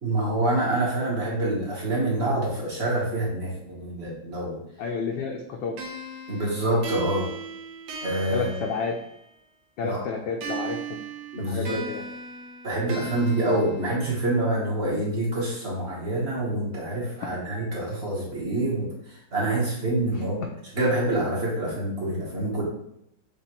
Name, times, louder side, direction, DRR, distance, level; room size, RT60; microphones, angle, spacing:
voice 1, 0.0-4.6 6.3-7.3 8.0-8.5 9.8-10.0 11.3-11.8 12.6-20.4 20.7-22.6, right 1 dB, 35° right, -4 dB, 1.3 m, -26 dB
voice 2, 4.8-5.8 8.3-8.9 9.8-11.0 11.5-12.0 20.1-20.2, left 5 dB, 75° left, 0 dB, 1.2 m, -30 dB
sound 1, 5.8-9.4 10.4-14.4, right 4 dB, 75° right, 1.5 m, -38 dB
6.6 x 2.5 x 3.0 m, 0.78 s
omnidirectional pair, 2.2 m